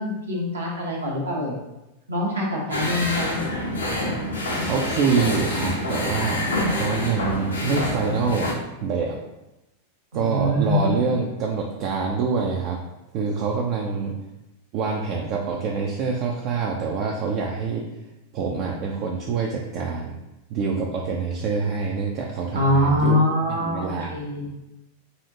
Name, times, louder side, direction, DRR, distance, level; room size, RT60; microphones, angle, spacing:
voice 1, 0.0-1.5 2.1-3.5 10.1-11.0 22.5-24.5, left 1 dB, 75° right, -3 dB, 0.9 m, -24 dB
sound 1, 2.7-8.5, left 1 dB, 70° left, 0.7 m, -27 dB
voice 2, 4.6-6.4 6.7-8.5 8.8-9.2 10.1-12.8 13.1-14.2 14.7-17.9 18.3-20.2 20.5-23.2 23.5-24.5, right 5 dB, 40° right, 0 dB, 0.4 m, -26 dB
4.1 x 2.4 x 2.6 m, 0.96 s
figure-of-eight pair, 90°, 0 cm